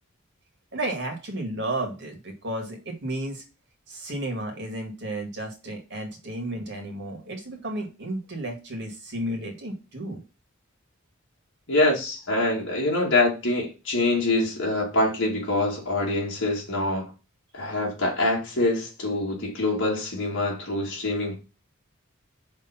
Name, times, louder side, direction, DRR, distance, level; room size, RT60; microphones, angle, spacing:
voice 1, 0.7-3.4 3.9-10.2, right 1 dB, 55° right, 1.9 m, -33 dB
voice 2, 11.7-17.1 17.5-21.4, left 2 dB, 60° left, 2.0 m, -25 dB
5.6 x 3.4 x 5.7 m
head